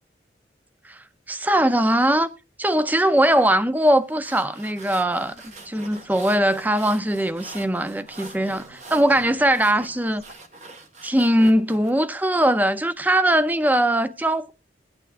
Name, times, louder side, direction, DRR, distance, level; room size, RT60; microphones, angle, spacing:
voice 1, 1.3-2.3 2.6-5.3 5.7-10.2 11.0-14.5, right 1 dB, 10° right, 0.5 m, -20 dB
sound 1, 4.0-11.9, right 3 dB, 40° right, 1.4 m, -44 dB
sound 2, 5.0-10.3, right 1 dB, 60° right, 5.5 m, -51 dB
21.5 x 8.9 x 2.4 m
head